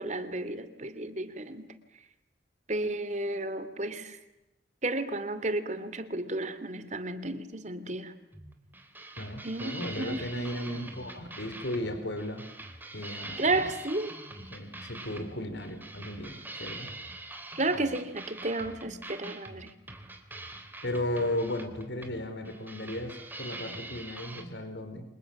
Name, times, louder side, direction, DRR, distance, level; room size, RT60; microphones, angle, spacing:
voice 1, 0.0-1.7 2.7-4.2 4.8-8.1 9.4-10.9 13.4-14.2 17.6-19.7, right 2 dB, 40° right, 12 dB, 2.8 m, -32 dB
sound 1, 8.3-24.4, right 2 dB, 10° right, 3.4 m, -44 dB
voice 2, 9.2-12.4 12.9-13.7 14.5-16.9 20.8-25.0, left 1 dB, 85° left, 8 dB, 4.5 m, -35 dB
30.0 x 26.5 x 7.3 m, 0.91 s
head